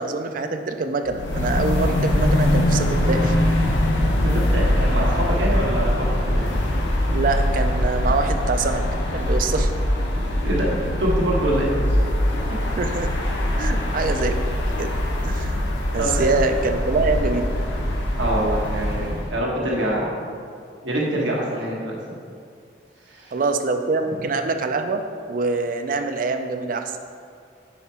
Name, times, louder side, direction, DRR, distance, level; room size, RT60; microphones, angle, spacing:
voice 1, 0.0-3.4 7.1-8.8 9.1-9.7 12.8-13.1 13.6-14.4 14.8-14.9 15.2-15.6 15.9-17.5 23.3-25.0 25.3-27.0, right 3 dB, 45° right, 6 dB, 0.4 m, -24 dB
sound 1, 1.1-19.4, left 1 dB, 80° left, 0.9 m, -22 dB
voice 2, 4.2-6.5 10.1-12.0 16.0-16.3 18.2-20.1 20.8-22.0 23.1-23.3 24.1-24.2, right 1 dB, 85° right, -3 dB, 1.2 m, -25 dB
5.7 x 4.5 x 4.3 m, 2.3 s
head